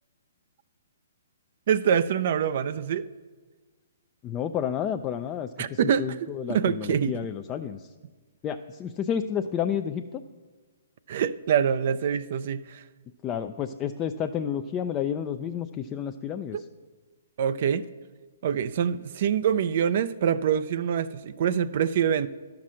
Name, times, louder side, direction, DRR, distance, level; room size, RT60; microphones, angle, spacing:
voice 1, 1.7-3.1 5.6-6.1 6.5-7.2 11.1-12.8 17.4-17.8 18.4-22.3, right 8 dB, 55° right, 13 dB, 0.4 m, -25 dB
voice 2, 4.2-7.9 8.4-10.2 13.2-16.6, left 8 dB, 25° left, 7 dB, 0.3 m, -31 dB
11.0 x 5.9 x 6.2 m, 1.4 s
hypercardioid pair, 135°, 0 cm